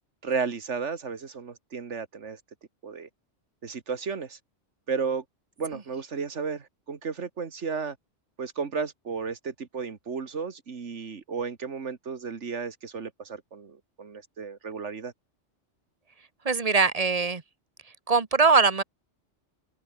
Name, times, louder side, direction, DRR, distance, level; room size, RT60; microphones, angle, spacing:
voice 1, 0.2-2.4 2.8-3.1 3.6-4.4 4.9-5.2 5.6-8.0 8.4-15.1, right 5 dB, 75° right, 1.9 m, -33 dB
voice 2, 16.4-17.4 18.1-18.8, right 4 dB, 30° right, 1.4 m, -21 dB
open air
omnidirectional pair, 1.2 m